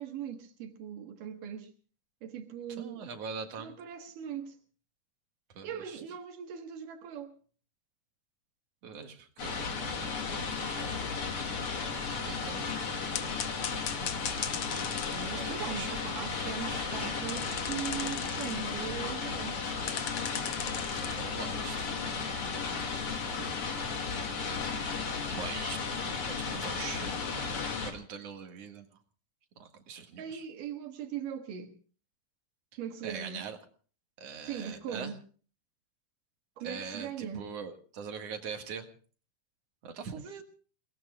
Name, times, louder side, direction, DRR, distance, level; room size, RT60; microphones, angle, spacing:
voice 1, 0.0-1.7 2.2-3.1 3.6-4.6 5.6-7.4 15.1-19.7 23.3-24.0 30.2-31.7 32.8-33.4 34.5-35.2 36.6-37.5, right 8 dB, 85° right, 3.1 m, -40 dB
voice 2, 2.7-3.8 5.5-6.0 8.8-11.0 12.1-12.8 15.3-17.0 20.9-21.9 25.4-25.8 26.3-29.0 29.6-30.4 33.0-33.6 34.2-35.1 36.6-38.9 39.8-40.4, right 6 dB, 55° right, 2.6 m, -43 dB
sound 1, 9.4-27.9, left 5 dB, 45° left, 2.8 m, -34 dB
sound 2, 13.1-15.3 15.6-16.8 17.3-18.6 19.0-19.1 19.4-19.5 19.9-22.3 23.2-23.3 23.5-23.6, left 10 dB, 70° left, 1.4 m, -39 dB
29.5 x 19.0 x 2.3 m
omnidirectional pair, 3.7 m